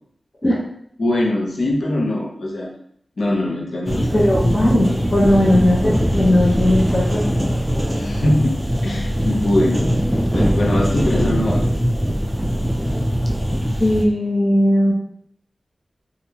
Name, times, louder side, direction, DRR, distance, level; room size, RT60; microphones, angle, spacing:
voice 1, 1.0-2.7 3.2-4.2 7.9-8.6 8.8-9.9 10.3-11.7, left 1 dB, 75° left, -1 dB, 0.7 m, -21 dB
sound 1, 3.9-14.0, equal, 10° right, 0.4 m, -21 dB
voice 2, 4.1-7.5 13.8-14.9, left 1 dB, 35° left, -7 dB, 0.9 m, -17 dB
3.5 x 2.4 x 2.8 m, 0.69 s
wide cardioid pair, 100°, 0 cm